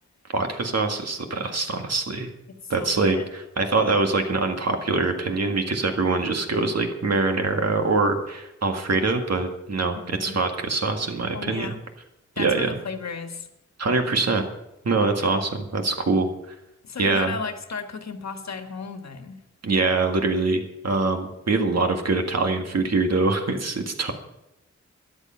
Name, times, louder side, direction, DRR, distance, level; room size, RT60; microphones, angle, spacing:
voice 1, 0.3-2.3 2.7-11.7 12.4-12.7 13.8-14.4 14.8-16.3 17.0-17.4 19.6-24.1, right 3 dB, 60° right, 4 dB, 1.9 m, -24 dB
voice 2, 2.5-3.2 9.9-10.4 11.3-11.8 12.4-13.5 16.8-19.4, left 5 dB, 65° left, 6 dB, 1.5 m, -35 dB
13.5 x 10.0 x 5.8 m, 0.86 s
wide cardioid pair, 115°, 29 cm